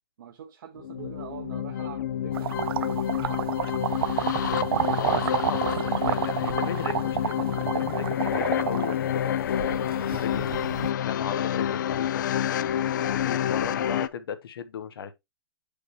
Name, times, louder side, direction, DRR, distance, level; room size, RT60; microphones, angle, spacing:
voice 1, 0.2-3.0 12.6-13.0, right 8 dB, 60° right, 1.0 m, -44 dB
sound 1, 0.8-14.1, left 10 dB, 55° left, 0.4 m, -28 dB
sound 2, 2.3-10.9, right 10 dB, 80° right, 0.4 m, -30 dB
voice 2, 5.0-10.5 11.0-12.2 12.9-15.1, left 7 dB, 75° left, 1.0 m, -36 dB
8.2 x 5.1 x 3.0 m
hypercardioid pair, 170°, 12 cm